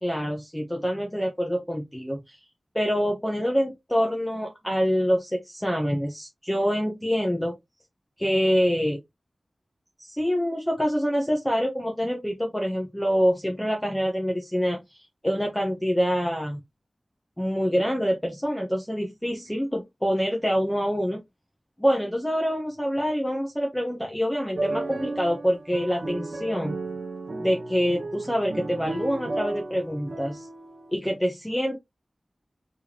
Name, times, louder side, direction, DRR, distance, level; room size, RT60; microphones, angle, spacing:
voice 1, 0.0-2.4 2.7-7.5 8.2-9.0 10.0-14.8 15.2-16.6 17.4-21.2 21.8-26.8 27.4-30.5 30.9-31.8, equal, 5° left, 1.1 m, -26 dB
sound 1, 24.6-30.9, right 2 dB, 65° right, 0.7 m, -33 dB
4.5 x 3.6 x 2.9 m
wide cardioid pair, 85°, 0 cm